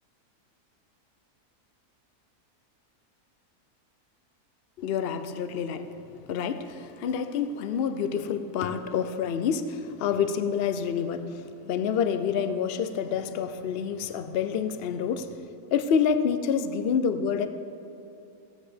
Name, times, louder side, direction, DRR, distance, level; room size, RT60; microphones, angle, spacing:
voice 1, 4.8-5.9 6.2-15.3 15.7-17.5, left 7 dB, 60° left, 10 dB, 0.6 m, -28 dB
15.5 x 9.2 x 5.0 m, 2.7 s
omnidirectional pair, 1.6 m